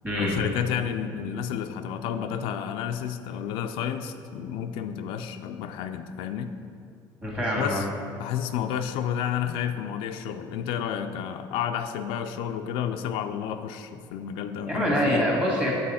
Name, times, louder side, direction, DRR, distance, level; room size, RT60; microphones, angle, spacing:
voice 1, 0.1-6.5 7.6-7.9 8.2-15.3, left 9 dB, 75° left, 7 dB, 0.4 m, -31 dB
voice 2, 7.2-7.8 14.7-15.7, equal, 15° right, -4 dB, 1.7 m, -25 dB
8.7 x 4.0 x 4.2 m, 2.3 s
cardioid pair, 140°, 9 cm